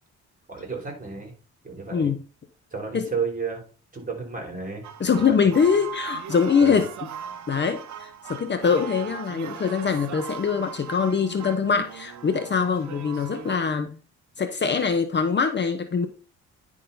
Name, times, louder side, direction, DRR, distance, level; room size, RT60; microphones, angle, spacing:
voice 1, 0.5-1.3 1.6-2.1 2.7-3.6 3.9-5.4 6.6-6.8, right 5 dB, 25° right, 2 dB, 4.2 m, -32 dB
sound 1, 4.8-13.6, right 8 dB, 70° right, 1.1 m, -39 dB
voice 2, 5.0-6.9 7.5-14.0 14.4-16.1, left 6 dB, 35° left, 7 dB, 1.0 m, -23 dB
10.0 x 3.7 x 5.6 m, 0.36 s
cardioid pair, 90°, 30 cm